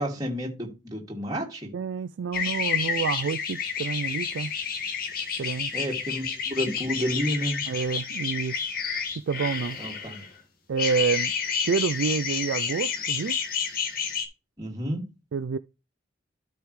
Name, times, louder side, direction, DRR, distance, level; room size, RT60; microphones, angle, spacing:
voice 1, 0.0-1.7 5.7-7.6 9.8-10.3 14.6-15.0, equal, 20° right, 2.5 m, -30 dB
voice 2, 1.7-4.5 5.4-5.7 7.7-8.6 9.3-9.8 10.7-11.3 11.6-13.4 15.3-15.6, right 5 dB, 80° right, 0.4 m, -28 dB
sound 1, 2.3-10.3 10.8-14.2, left 6 dB, 50° left, 1.7 m, -30 dB
12.5 x 5.3 x 3.2 m
head